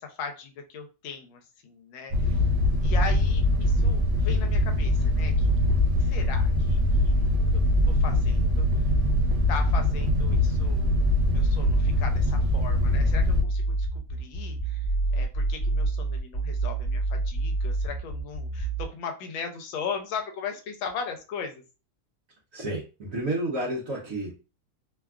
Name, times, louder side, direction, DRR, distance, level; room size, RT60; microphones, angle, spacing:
voice 1, 0.0-2.4 2.8-5.5 6.0-7.3 7.5-8.8 9.5-14.8 15.1-21.6, left 6 dB, 80° left, 5 dB, 1.4 m, -38 dB
sound 1, 2.1-13.4, left 3 dB, 80° right, 1.3 m, -24 dB
sound 2, 2.8-18.8, right 2 dB, 25° left, 1.0 m, -27 dB
voice 2, 22.5-24.4, right 1 dB, 60° right, -6 dB, 0.9 m, -31 dB
3.3 x 2.3 x 2.3 m, 0.32 s
omnidirectional pair, 2.2 m